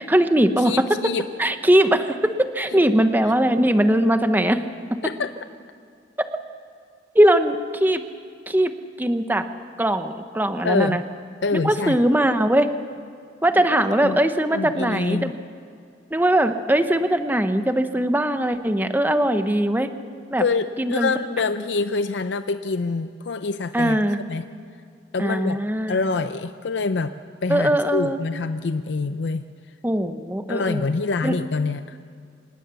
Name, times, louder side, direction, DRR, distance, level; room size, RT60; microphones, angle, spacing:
voice 1, 0.0-0.9 1.4-4.6 6.2-6.3 7.1-8.0 8.5-8.7 9.0-9.5 9.8-11.0 11.5-12.7 13.4-15.3 16.1-19.9 20.3-20.4 20.8-21.1 23.7-24.2 25.2-26.0 27.5-28.2 29.8-30.8 31.2-31.3, right 1 dB, 10° right, 9 dB, 0.9 m, -20 dB
voice 2, 0.6-1.3 2.7-3.0 5.0-5.3 10.6-11.0 11.4-12.0 13.7-14.2 14.5-15.3 20.4-24.0 24.3-24.4 25.1-25.6 25.9-27.1 27.4-29.5 30.5-32.0, left 4 dB, 70° left, 10 dB, 0.6 m, -26 dB
26.0 x 19.0 x 6.9 m, 2.4 s
head